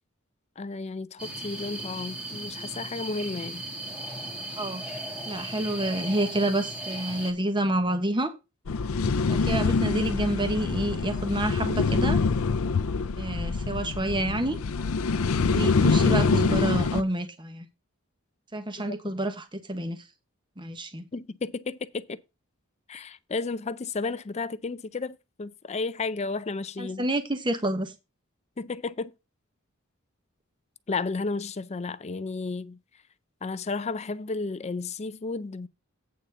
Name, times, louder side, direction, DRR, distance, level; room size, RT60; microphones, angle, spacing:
voice 1, 0.6-3.6 18.9-19.0 21.1-22.2 22.9-27.1 28.6-29.1 30.9-32.8 33.4-35.7, left 3 dB, 30° left, 0.5 m, -33 dB
sound 1, 1.2-7.3, right 1 dB, 5° right, 1.9 m, -37 dB
voice 2, 5.2-8.3 9.3-12.2 13.2-14.6 15.5-17.7 18.5-20.0 20.6-21.0 26.8-27.9, right 1 dB, 20° right, 1.1 m, -28 dB
sound 2, 8.7-17.0, left 4 dB, 80° left, 0.6 m, -25 dB
8.6 x 4.1 x 6.6 m
head